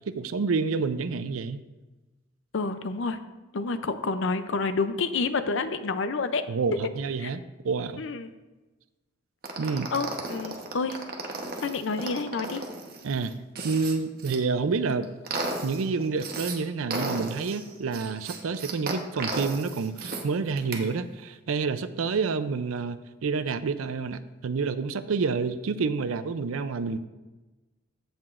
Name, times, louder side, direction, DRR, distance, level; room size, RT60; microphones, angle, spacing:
voice 1, 0.0-1.6 6.5-8.0 9.6-9.9 13.0-13.4 13.6-15.1 15.6-27.0, right 4 dB, 90° right, 12 dB, 0.5 m, -28 dB
voice 2, 2.5-3.2 3.5-6.4 7.2-7.3 8.0-8.3 9.9-11.0 11.6-12.6 14.9-15.0, left 4 dB, 65° left, 11 dB, 0.5 m, -29 dB
sound 1, 9.4-14.4 14.8-16.6 16.9-20.2 20.6-20.8, right 3 dB, 45° right, 1.0 m, -34 dB
15.0 x 5.9 x 2.5 m, 1.1 s
head